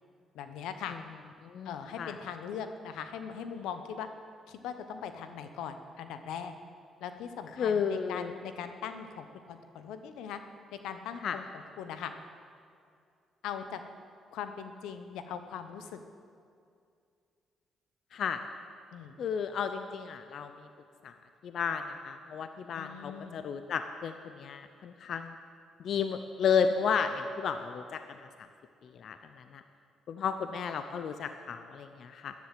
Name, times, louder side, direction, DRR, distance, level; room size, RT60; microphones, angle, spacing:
voice 1, 0.3-1.0 1.6-4.1 4.5-6.5 7.0-10.4 10.7-11.4 11.8-12.1 13.4-13.8 14.3-16.0 18.9-19.2 22.8-23.4, left 8 dB, 90° left, 9 dB, 1.0 m, -40 dB
voice 2, 1.4-2.2 7.6-8.3 11.2-11.4 18.1-18.4 19.2-20.7 21.0-21.1 21.4-25.3 25.8-28.3 28.8-29.6 30.1-32.3, left 6 dB, 65° left, 8 dB, 0.7 m, -33 dB
13.5 x 11.0 x 7.7 m, 2.3 s
cardioid pair, 90°, 0 cm